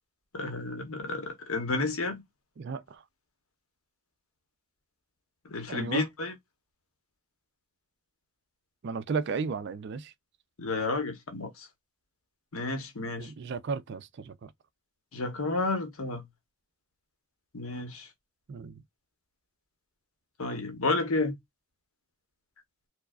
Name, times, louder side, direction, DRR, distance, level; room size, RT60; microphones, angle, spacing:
voice 1, 0.3-2.2 5.4-6.3 10.6-11.7 12.5-13.3 15.1-16.2 17.5-18.1 20.4-21.3, left 3 dB, 70° left, 1.0 m, -31 dB
voice 2, 2.6-3.0 5.7-6.1 8.8-10.1 13.2-14.5 18.5-18.8, right 5 dB, 50° right, 0.3 m, -34 dB
4.6 x 2.0 x 2.4 m
head